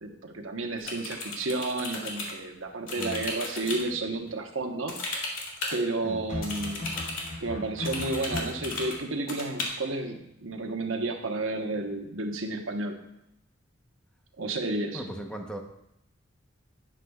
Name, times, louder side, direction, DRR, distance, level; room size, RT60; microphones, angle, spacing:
voice 1, 0.0-5.0 5.7-6.8 7.4-13.0 14.4-15.0, right 2 dB, 80° right, 3 dB, 1.1 m, -31 dB
sound 1, 0.8-2.3 2.9-3.8 4.9-5.8 6.4-7.3 7.8-9.0 9.3-9.6, left 3 dB, 85° left, 2.3 m, -35 dB
sound 2, 3.6-4.2 6.3-9.0, left 2 dB, 40° left, 3.9 m, -38 dB
voice 2, 14.9-15.6, right 1 dB, 5° left, 2 dB, 0.9 m, -37 dB
11.5 x 9.9 x 2.4 m, 0.80 s
head